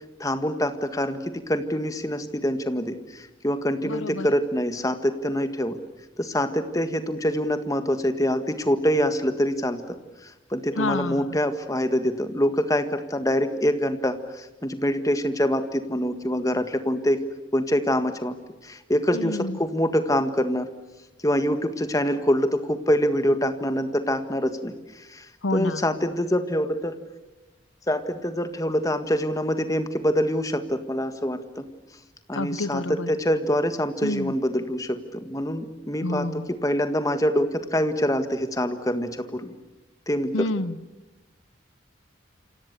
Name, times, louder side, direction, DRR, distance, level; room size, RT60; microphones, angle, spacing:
voice 1, 0.2-5.8 6.2-10.0 10.2-17.2 17.5-18.3 18.6-20.7 21.2-25.3 25.5-27.0 27.9-31.6 32.3-39.5 40.1-40.5, equal, 15° left, 8 dB, 1.7 m, -25 dB
voice 2, 3.8-4.3 10.8-11.4 19.1-19.6 25.4-25.8 32.3-33.1 34.0-34.3 36.0-36.5 40.3-40.8, left 2 dB, 85° left, 15 dB, 0.9 m, -29 dB
28.5 x 26.5 x 6.9 m, 1.0 s
head